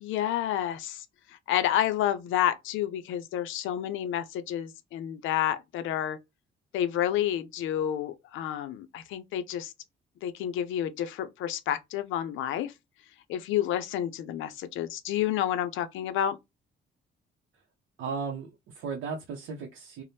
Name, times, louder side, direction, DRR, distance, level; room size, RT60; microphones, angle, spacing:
voice 1, 0.0-1.1 1.5-6.2 6.7-9.7 10.2-12.7 13.3-16.4, left 11 dB, 85° left, 0.4 m, -29 dB
voice 2, 18.0-20.0, right 5 dB, 85° right, 0.6 m, -36 dB
2.7 x 2.0 x 3.2 m
cardioid pair, 90°, 20 cm